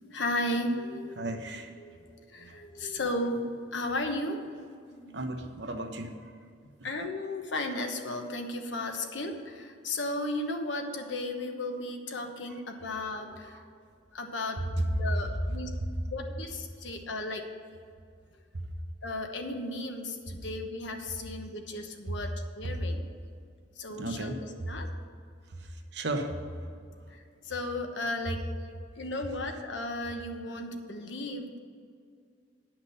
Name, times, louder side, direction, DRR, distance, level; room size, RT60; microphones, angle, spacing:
voice 1, 0.0-1.3 1.8-5.2 6.6-13.7 14.1-14.6 14.9-15.7 16.1-17.4 19.0-23.0 23.8-24.9 27.1-28.4 29.0-31.6, left 1 dB, 75° left, 4 dB, 1.1 m, -35 dB
voice 2, 1.2-1.7 2.5-2.6 5.1-6.3 12.5-12.6 18.5-18.6 24.0-24.7 25.5-26.7, right 1 dB, 60° right, 4 dB, 1.0 m, -36 dB
9.6 x 5.9 x 6.8 m, 2.2 s
head